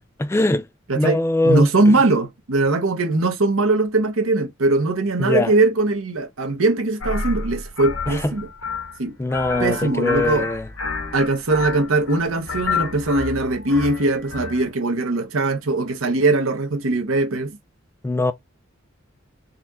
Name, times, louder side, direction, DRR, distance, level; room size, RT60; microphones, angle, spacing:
voice 1, 0.2-0.7 1.0-1.9 5.2-5.5 8.1-8.3 9.2-10.6 18.0-18.3, left 2 dB, 15° left, 0.3 m, -21 dB
voice 2, 1.4-8.5 9.0-9.1 9.6-10.5 11.1-17.6, right 2 dB, 85° right, 1.0 m, -20 dB
sound 1, 7.0-14.7, left 4 dB, 85° left, 1.2 m, -29 dB
4.1 x 2.5 x 4.1 m
head